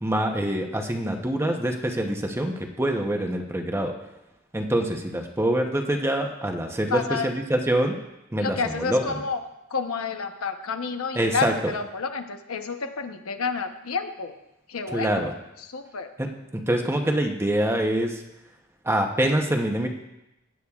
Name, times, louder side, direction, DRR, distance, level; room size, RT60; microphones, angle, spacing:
voice 1, 0.0-3.9 4.5-8.0 8.3-9.0 11.1-11.5 14.9-15.3 16.2-18.2 18.8-19.9, right 1 dB, 10° right, 3 dB, 0.8 m, -25 dB
voice 2, 6.9-7.3 8.4-9.4 9.7-14.3 14.7-16.1, left 4 dB, 80° left, 7 dB, 0.9 m, -30 dB
16.5 x 10.0 x 2.4 m, 0.92 s
head